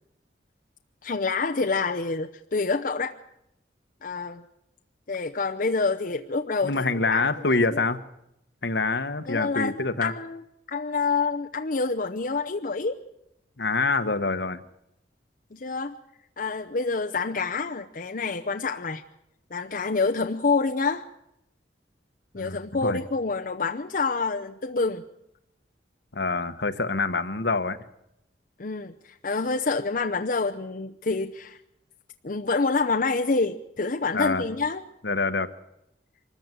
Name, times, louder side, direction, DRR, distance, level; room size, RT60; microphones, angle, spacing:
voice 1, 1.0-3.2 4.0-4.4 5.1-7.8 9.3-9.7 10.0-10.4 10.7-13.0 15.5-16.0 16.4-19.0 19.5-21.1 22.3-25.0 28.6-31.6 32.2-34.8, left 4 dB, 50° left, 4 dB, 0.8 m, -27 dB
voice 2, 6.6-8.0 8.6-10.1 13.6-14.6 22.3-23.0 26.1-27.8 34.1-34.4 35.0-35.5, left 3 dB, 70° left, 10 dB, 1.3 m, -26 dB
24.0 x 14.0 x 9.2 m, 0.82 s
head